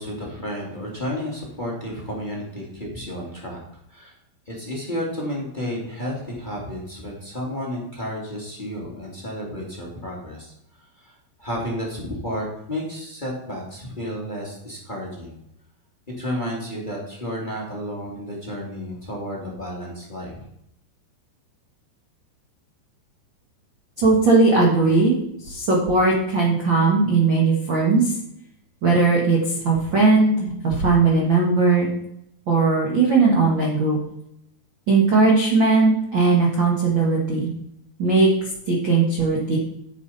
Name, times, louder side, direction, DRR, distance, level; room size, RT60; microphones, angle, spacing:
voice 1, 0.0-3.6 3.9-4.1 4.4-15.3 16.2-20.4, equal, 25° left, -3 dB, 1.0 m, -32 dB
voice 2, 24.0-28.2 28.8-31.9 32.5-34.0 34.9-37.5 38.0-39.6, right 3 dB, 75° right, -3 dB, 1.0 m, -18 dB
9.4 x 9.2 x 4.1 m, 0.79 s
omnidirectional pair, 5.0 m